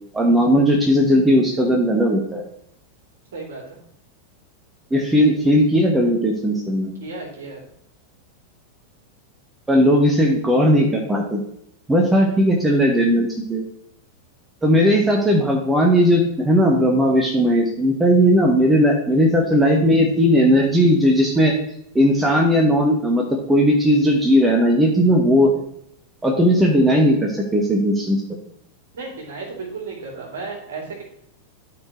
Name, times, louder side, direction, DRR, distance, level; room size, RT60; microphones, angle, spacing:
voice 1, 0.1-2.4 4.9-6.9 9.7-11.4 11.9-13.6 14.6-21.6 21.9-25.6 26.2-28.2, equal, 10° right, 0 dB, 1.2 m, -17 dB
voice 2, 3.3-3.8 7.0-7.6 28.9-31.0, right 4 dB, 60° right, -1 dB, 2.9 m, -34 dB
13.0 x 4.5 x 3.1 m, 0.72 s
figure-of-eight pair, 90°, 0 cm